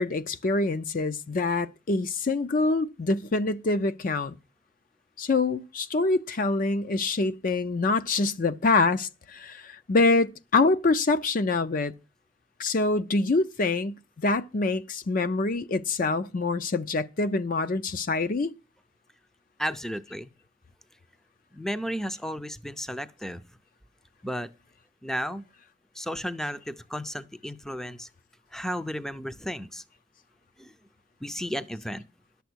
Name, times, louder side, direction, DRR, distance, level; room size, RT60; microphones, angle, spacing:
voice 1, 0.0-4.3 5.2-11.9 12.6-18.5, left 3 dB, 50° left, 0.5 m, -25 dB
voice 2, 19.6-20.3 21.5-23.4 24.2-24.5 25.0-25.4 26.0-28.1 28.5-29.8 30.6-30.7 31.2-32.0, equal, 5° left, 0.5 m, -33 dB
11.5 x 6.9 x 6.2 m
head